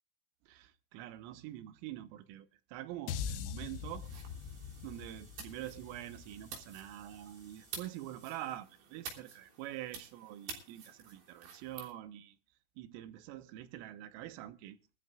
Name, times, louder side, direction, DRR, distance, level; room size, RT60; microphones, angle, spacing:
voice 1, 0.5-4.1 4.8-12.4 12.8-14.8, right 13 dB, 85° right, 3.5 m, -45 dB
sound 1, 3.1-7.4, left 7 dB, 85° left, 3.6 m, -43 dB
sound 2, 3.6-8.6, right 2 dB, 25° right, 4.8 m, -64 dB
sound 3, 4.0-11.9, right 5 dB, 55° right, 5.3 m, -50 dB
23.0 x 13.0 x 2.3 m
omnidirectional pair, 5.8 m